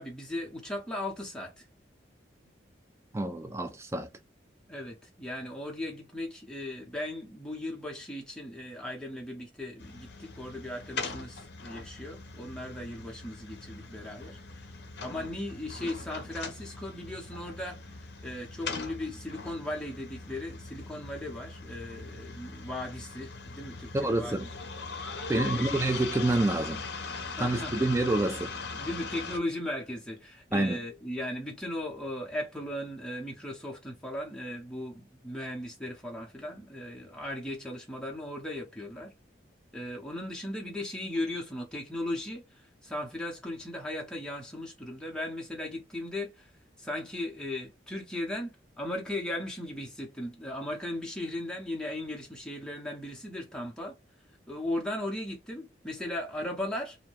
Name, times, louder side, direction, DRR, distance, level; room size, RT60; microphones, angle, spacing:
voice 1, 0.0-1.6 4.7-14.4 15.0-18.0 18.2-24.5 25.3-25.5 27.4-27.9 28.7-39.1 39.7-46.5 46.8-53.9 54.5-57.0, left 1 dB, 5° left, 0.7 m, -37 dB
voice 2, 3.1-4.1 23.9-24.5 25.3-26.8 27.4-28.5 30.5-30.8, right 2 dB, 15° right, 0.3 m, -27 dB
sound 1, 9.8-29.4, left 4 dB, 60° left, 0.6 m, -40 dB
2.6 x 2.2 x 3.0 m
head